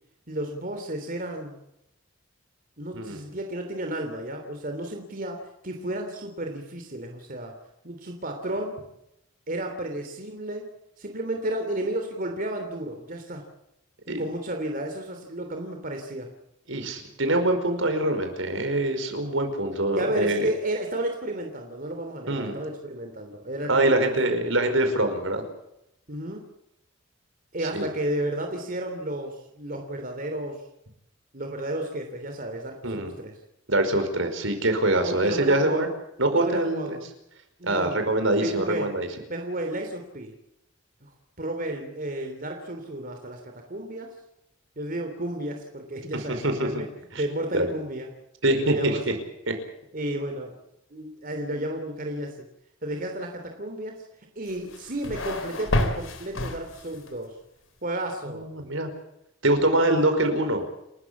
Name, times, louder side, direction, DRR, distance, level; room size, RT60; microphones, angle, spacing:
voice 1, 0.3-1.6 2.8-7.5 7.8-8.7 9.5-10.6 11.0-13.4 14.1-16.3 19.9-24.1 26.1-26.4 27.5-30.6 31.3-33.3 35.0-35.9 36.3-37.0 37.6-38.1 38.4-38.9 39.3-40.3 41.0-41.1 41.4-44.1 44.8-46.9 47.2-48.1 48.6-49.2 49.9-50.6 50.9-52.4 52.8-54.0 54.3-57.3 57.8-58.4, right 1 dB, 45° right, 4 dB, 3.3 m, -32 dB
voice 2, 16.7-20.5 22.3-22.6 23.7-25.4 27.7-27.9 32.8-33.1 33.7-35.9 36.2-37.0 37.7-39.1 46.4-46.8 47.1-47.2 47.5-47.7 48.4-49.0 49.5-49.6 58.3-58.9 59.4-60.7, right 1 dB, 70° right, 7 dB, 5.1 m, -24 dB
sound 1, 54.5-57.1, left 1 dB, 75° left, 3.9 m, -29 dB
30.0 x 13.5 x 8.6 m, 0.83 s
head